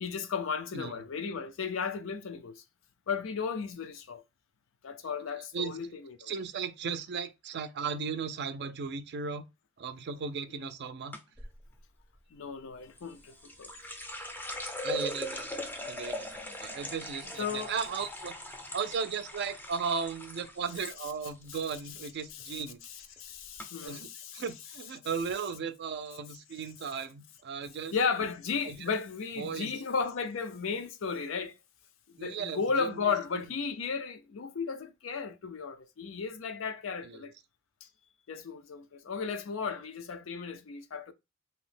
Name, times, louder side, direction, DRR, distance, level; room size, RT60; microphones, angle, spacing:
voice 1, 0.0-2.6 3.1-4.2 4.8-6.3 12.3-13.7 17.4-17.7 23.2-24.4 27.9-31.5 32.1-37.3 38.3-41.1, left 5 dB, 70° left, 0.4 m, -34 dB
voice 2, 0.7-1.0 5.5-5.8 6.2-9.4 9.8-11.2 14.8-18.3 18.7-22.8 23.8-24.1 24.3-28.0 28.6-28.8 29.4-29.7 32.2-33.5 37.0-37.2, right 5 dB, 55° right, 0.4 m, -36 dB
sound 1, 11.1-11.5 13.0-20.9 21.2-21.8 22.1-22.5 23.2-23.3 23.6-23.7, left 1 dB, 10° left, 0.5 m, -40 dB
2.8 x 2.1 x 3.2 m
head